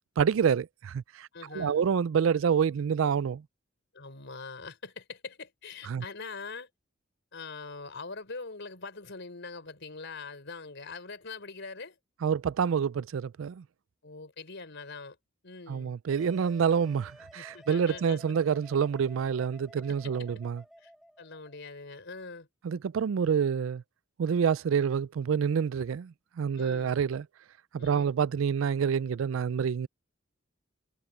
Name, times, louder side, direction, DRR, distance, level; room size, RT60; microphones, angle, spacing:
voice 1, 0.2-1.3 1.5-3.4 5.9-6.0 12.2-13.6 15.7-20.6 22.6-23.8 24.2-27.2 27.7-29.9, right 7 dB, 75° right, 0.4 m, -27 dB
voice 2, 1.3-1.8 3.9-6.7 7.3-12.0 14.0-15.2 15.4-15.9 17.3-18.2 20.0-20.3 20.8-20.9 21.2-22.5 26.6-26.9 27.8-28.1, left 4 dB, 65° left, 4.4 m, -43 dB
Wind instrument woodwind instrument, 16.1-21.6, equal, ahead, 7.7 m, -54 dB
head